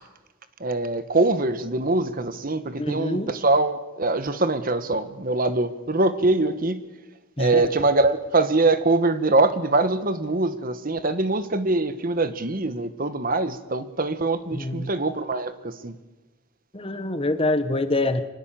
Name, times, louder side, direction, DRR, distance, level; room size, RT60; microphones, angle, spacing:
voice 1, 0.6-6.8 7.4-15.9, right 2 dB, 45° right, 12 dB, 1.3 m, -23 dB
voice 2, 2.7-3.3 7.4-7.6 14.5-14.9 16.7-18.2, left 2 dB, 25° left, 11 dB, 1.2 m, -25 dB
25.0 x 19.0 x 7.6 m, 1.2 s
head